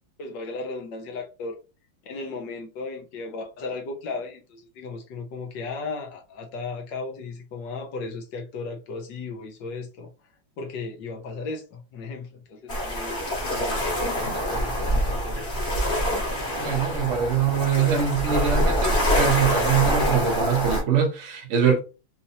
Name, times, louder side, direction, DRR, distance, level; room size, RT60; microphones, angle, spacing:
voice 1, 0.2-1.6 2.0-10.1 10.6-15.5, left 3 dB, 65° left, 1.4 m, -35 dB
sound 1, 12.7-20.8, equal, 35° left, 1.4 m, -25 dB
voice 2, 16.6-21.8, right 7 dB, 65° right, 0.7 m, -23 dB
4.3 x 2.6 x 2.7 m
omnidirectional pair, 2.4 m